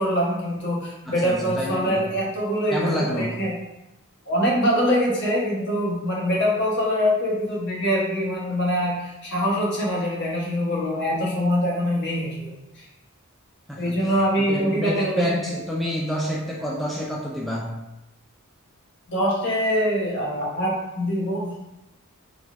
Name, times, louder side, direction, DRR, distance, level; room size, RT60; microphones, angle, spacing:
voice 1, 0.0-3.5 4.3-12.8 13.8-15.6 19.1-21.5, equal, 50° left, -3 dB, 1.1 m, -24 dB
voice 2, 1.1-2.1 2.7-3.5 13.7-14.0 14.4-17.8, equal, ahead, -4 dB, 0.4 m, -28 dB
4.6 x 3.8 x 2.4 m, 0.93 s
head